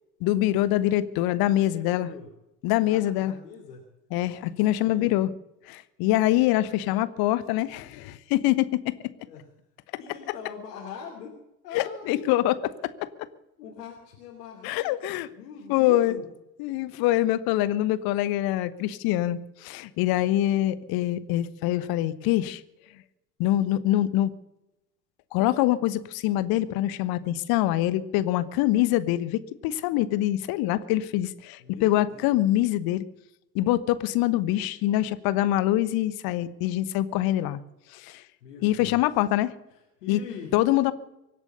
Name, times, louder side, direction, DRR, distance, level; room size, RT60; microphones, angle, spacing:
voice 1, 0.2-2.1 2.6-3.3 4.1-5.3 5.7-8.9 11.7-12.6 12.8-13.1 14.6-15.3 15.7-16.2 16.6-22.6 23.4-24.3 25.3-33.0 33.5-37.6 37.9-38.2 38.6-39.5 40.1-40.2 40.5-40.9, left 14 dB, 45° left, 16 dB, 1.2 m, -24 dB
voice 2, 1.7-2.3 2.9-3.8 4.7-5.1 9.2-9.4 10.0-11.4 11.6-12.2 13.6-15.0 15.3-16.3 31.6-32.4 38.1-39.0 39.7-40.6, left 6 dB, 65° left, -1 dB, 3.0 m, -42 dB
24.0 x 8.2 x 6.8 m, 0.90 s
figure-of-eight pair, 65°, 50 cm